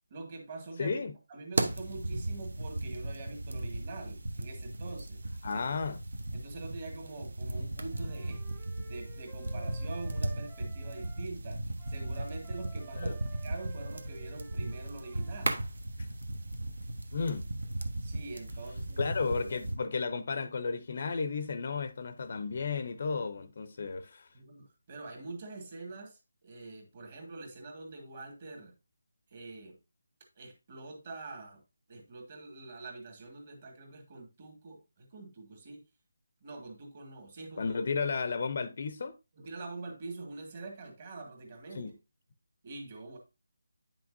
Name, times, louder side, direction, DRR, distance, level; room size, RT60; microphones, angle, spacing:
voice 1, 0.1-1.0 1.3-5.2 5.5-5.6 6.3-11.6 11.9-15.6 18.0-19.1 24.3-28.7 29.3-29.8 30.4-31.6 31.9-35.8 36.4-37.8 39.4-41.9 42.6-43.2, right 3 dB, 30° right, 1.7 m, -45 dB
voice 2, 0.8-1.1 5.4-6.0 13.0-13.1 17.1-17.4 19.0-24.3 37.6-39.1 41.7-41.9, left 4 dB, 40° left, 0.6 m, -33 dB
sound 1, 1.5-19.7, right 2 dB, 70° right, 1.1 m, -37 dB
Wind instrument woodwind instrument, 7.9-11.3 11.8-15.5, right 4 dB, 15° right, 1.0 m, -55 dB
8.9 x 5.9 x 2.6 m
figure-of-eight pair, 170°, 0 cm